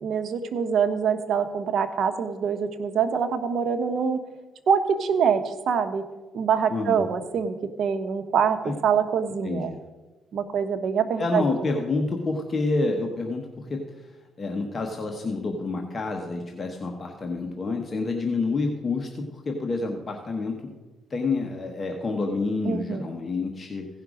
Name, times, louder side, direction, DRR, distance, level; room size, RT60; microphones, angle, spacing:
voice 1, 0.0-4.2 4.7-6.0 6.3-9.7 10.3-11.4 22.6-23.1, right 7 dB, 65° right, 9 dB, 1.0 m, -25 dB
voice 2, 6.7-7.0 8.6-8.7 9.4-9.8 11.2-13.9 14.4-20.7 21.1-23.9, left 3 dB, 35° left, 2 dB, 1.1 m, -28 dB
16.0 x 5.8 x 5.0 m, 1.2 s
cardioid pair, 90°, 0 cm